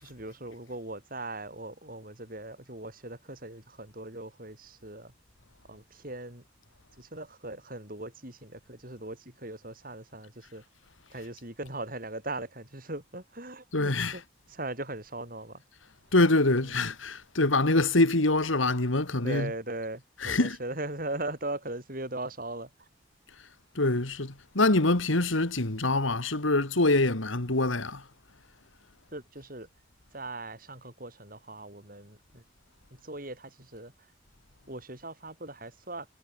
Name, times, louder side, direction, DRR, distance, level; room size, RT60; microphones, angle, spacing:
voice 1, 0.0-5.1 5.7-6.4 7.0-10.6 11.1-14.2 14.5-15.6 16.5-16.8 19.2-22.9 29.1-29.7 30.1-32.4 33.0-33.9 34.7-36.1, right 2 dB, 45° right, 7.1 m, -39 dB
voice 2, 13.7-14.2 16.1-19.5 20.2-20.6 23.8-28.0, left 2 dB, 90° left, 2.5 m, -25 dB
head